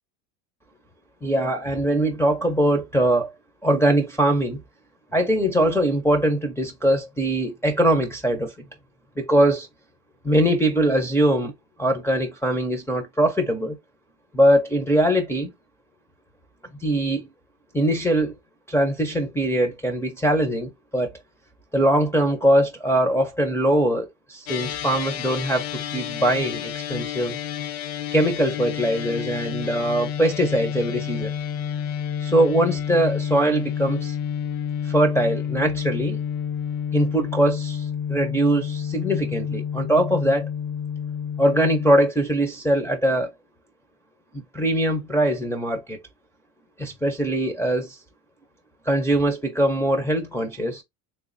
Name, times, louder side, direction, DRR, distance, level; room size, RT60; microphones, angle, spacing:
voice 1, 1.2-3.3 3.6-4.6 5.1-8.5 9.2-9.7 10.2-11.5 11.8-13.8 14.3-15.5 16.8-17.3 17.7-18.3 18.7-21.1 21.7-27.4 28.1-31.3 32.2-34.2 34.9-36.2 36.9-40.5 41.4-43.3 44.3-46.0 46.8-48.0 48.9-50.8, right 1 dB, 5° left, 0.5 m, -22 dB
sound 1, 24.5-41.9, left 8 dB, 60° left, 0.7 m, -30 dB
3.3 x 3.2 x 2.5 m
supercardioid pair, 120°, 48 cm